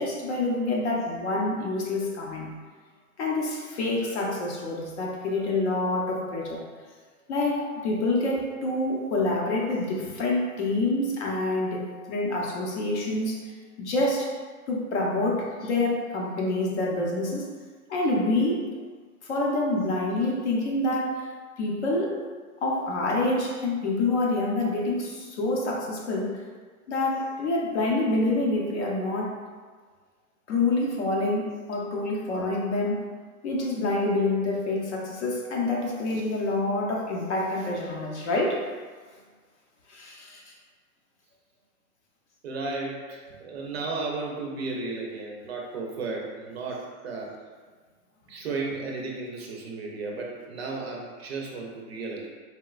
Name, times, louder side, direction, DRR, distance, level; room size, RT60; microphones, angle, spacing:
voice 1, 0.0-2.5 3.2-6.7 7.3-14.4 14.7-17.5 17.9-18.7 19.2-21.3 21.6-22.2 22.6-26.4 26.9-29.4 30.5-33.1 33.4-38.6 39.9-40.4, left 2 dB, 50° left, -1 dB, 0.6 m, -27 dB
voice 2, 42.4-47.3 48.3-52.3, right 3 dB, 45° right, -1 dB, 0.5 m, -34 dB
4.0 x 2.1 x 2.3 m, 1.5 s
hypercardioid pair, 150°, 45 cm